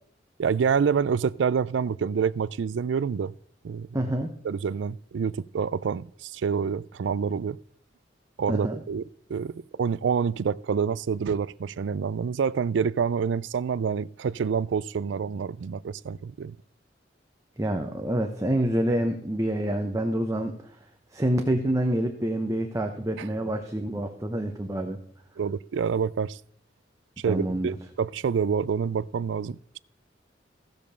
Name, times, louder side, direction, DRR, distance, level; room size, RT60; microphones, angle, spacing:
voice 1, 0.4-3.3 3.6-3.9 4.4-7.6 8.4-9.0 9.3-16.6 25.4-26.4 27.2-29.8, right 6 dB, 80° right, 0.4 m, -27 dB
voice 2, 3.9-4.3 8.5-8.8 17.6-20.5 21.1-25.0 27.3-27.8, right 1 dB, 20° right, 0.9 m, -27 dB
15.5 x 5.3 x 6.7 m
head